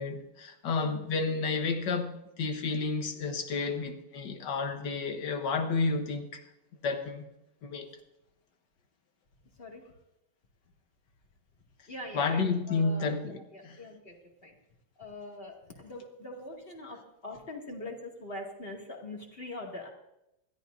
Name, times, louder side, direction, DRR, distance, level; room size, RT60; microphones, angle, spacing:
voice 1, 0.0-6.4 6.8-7.3 7.6-7.9 12.1-13.8, left 4 dB, 70° left, 1.8 m, -31 dB
voice 2, 11.9-14.5 15.0-19.9, left 2 dB, 30° left, 2.4 m, -43 dB
21.5 x 14.0 x 2.6 m
omnidirectional pair, 2.0 m